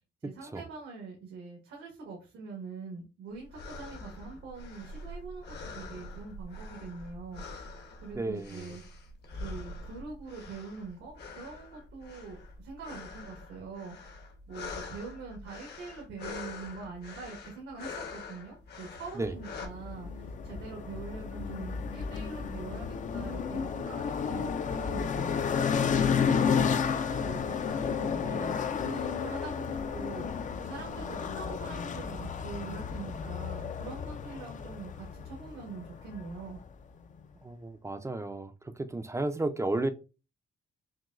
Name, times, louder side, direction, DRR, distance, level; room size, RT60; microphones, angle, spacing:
voice 1, 0.2-7.4 8.0-8.8 9.3-14.2 14.5-25.4 25.9-30.3 30.6-36.6, right 4 dB, 85° right, 1.3 m, -44 dB
sound 1, 3.3-19.7, left 3 dB, 55° left, 1.1 m, -45 dB
voice 2, 8.1-8.7 19.2-19.3 37.4-38.5 38.8-39.9, right 2 dB, 15° right, 0.4 m, -32 dB
sound 2, 19.2-36.7, left 6 dB, 40° left, 0.5 m, -32 dB
6.1 x 2.2 x 2.4 m
cardioid pair, 90°, 20 cm